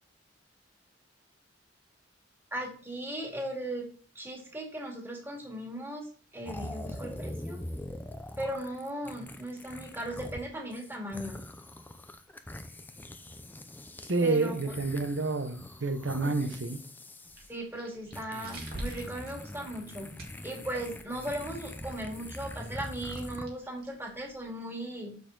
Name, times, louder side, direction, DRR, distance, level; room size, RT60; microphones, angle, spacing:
voice 1, 2.5-3.9 4.2-7.6 8.4-11.4 14.2-14.5 17.5-25.2, right 1 dB, 10° right, 2.1 m, -38 dB
sound 1, 6.5-10.4 10.7-17.5 18.1-23.5, left 1 dB, 10° left, 0.5 m, -43 dB
voice 2, 14.1-16.8, right 3 dB, 70° right, 0.8 m, -29 dB
sound 2, 17.2-24.5, right 1 dB, 55° right, 2.1 m, -48 dB
6.7 x 6.7 x 3.8 m
head